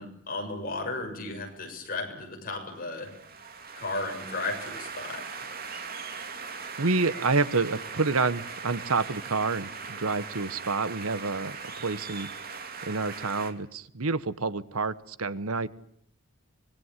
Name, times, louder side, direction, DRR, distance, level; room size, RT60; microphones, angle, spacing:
voice 1, 0.0-3.1 3.7-5.3, left 2 dB, 40° left, 2 dB, 7.2 m, -34 dB
sound 1, 2.8-13.5, right 5 dB, 40° right, 2.5 m, -40 dB
voice 2, 6.8-11.6 11.8-12.3 12.9-15.7, right 4 dB, 85° right, 15 dB, 1.2 m, -28 dB
25.0 x 21.0 x 9.8 m, 0.65 s
head